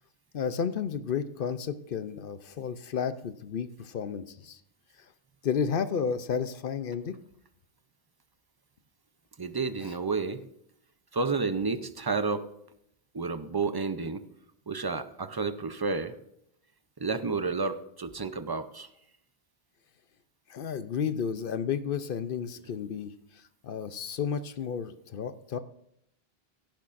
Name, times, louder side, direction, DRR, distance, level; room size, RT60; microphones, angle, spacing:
voice 1, 0.3-4.6 5.4-7.2 9.8-9.9 20.5-25.6, left 7 dB, 60° left, 12 dB, 0.8 m, -32 dB
voice 2, 9.4-10.4 11.1-12.5 13.1-14.2 14.7-16.1 17.0-18.9, right 4 dB, 30° right, 11 dB, 0.5 m, -30 dB
16.5 x 10.5 x 2.5 m, 0.74 s
omnidirectional pair, 1.1 m